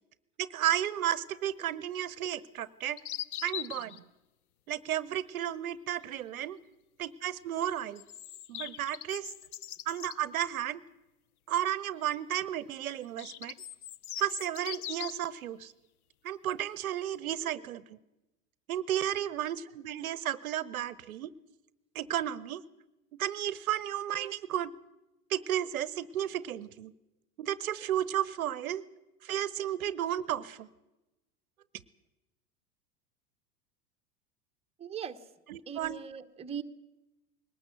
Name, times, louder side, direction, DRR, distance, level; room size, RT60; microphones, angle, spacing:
voice 1, 0.4-3.0 3.4-4.0 4.7-6.6 7.0-8.0 8.5-9.3 9.9-10.8 11.5-13.5 14.2-15.7 16.2-18.0 18.7-21.3 21.9-22.6 23.2-24.7 25.3-26.9 27.4-28.8 29.2-30.7 35.5-36.0, right 11 dB, 60° right, 19 dB, 0.9 m, -33 dB
sound 1, 2.6-4.0 7.7-10.2 12.9-15.3, left 11 dB, 65° left, 0.7 m, -41 dB
voice 2, 34.8-35.2 35.7-36.6, right 8 dB, 10° right, 7 dB, 1.1 m, -39 dB
21.5 x 19.0 x 7.9 m, 0.97 s
figure-of-eight pair, 85°, 48 cm